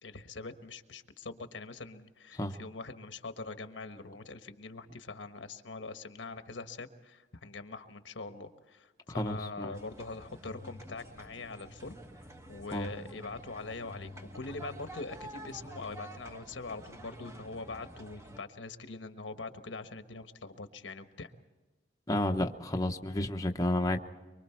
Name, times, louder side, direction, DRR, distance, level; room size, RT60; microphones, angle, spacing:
voice 1, 0.0-12.0 12.5-21.3, left 3 dB, 85° left, 1.2 m, -43 dB
voice 2, 9.1-9.7 12.7-12.9 22.1-24.0, left 1 dB, 20° left, 0.9 m, -31 dB
sound 1, 9.7-18.4, equal, 15° right, 1.2 m, -49 dB
24.0 x 24.0 x 4.5 m
head